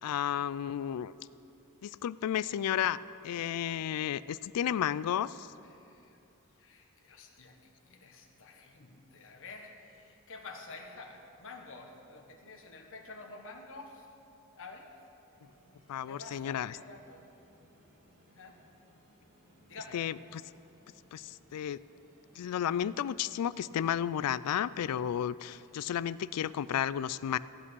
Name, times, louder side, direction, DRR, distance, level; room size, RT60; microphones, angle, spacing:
voice 1, 0.0-1.1 1.8-3.0 3.2-5.5 15.9-16.8 19.9-20.4 21.1-21.8 22.4-27.4, left 9 dB, 85° left, 17 dB, 0.3 m, -32 dB
voice 2, 5.6-6.2 6.6-14.1 14.5-15.1 16.0-17.2 18.3-18.6 19.7-20.0 25.5-25.9, left 3 dB, 65° left, 3 dB, 1.4 m, -49 dB
sound 1, 15.3-22.9, equal, 60° right, 3.8 m, -64 dB
15.0 x 8.3 x 6.2 m, 2.7 s
head